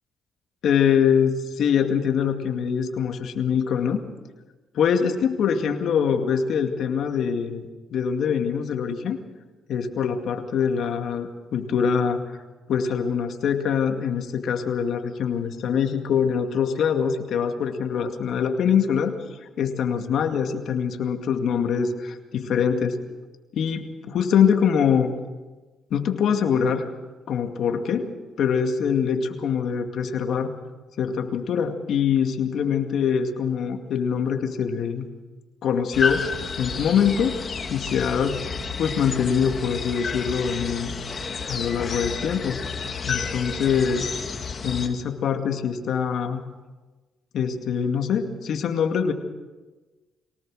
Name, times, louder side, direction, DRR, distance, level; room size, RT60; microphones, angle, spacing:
voice 1, 0.6-4.0 4.7-7.6 7.9-9.2 9.7-12.2 12.7-19.1 19.6-23.0 23.5-25.1 25.9-26.9 27.3-28.1 28.4-30.5 31.0-35.0 35.6-36.3 36.6-37.4 37.7-38.4 38.8-40.9 41.5-42.6 43.1-44.1 44.6-46.4 47.3-49.1, left 7 dB, 70° left, 5 dB, 2.2 m, -24 dB
sound 1, 35.9-44.9, left 5 dB, 45° left, 2.9 m, -30 dB
23.5 x 18.5 x 6.4 m, 1.2 s
cardioid pair, 90°, 0 cm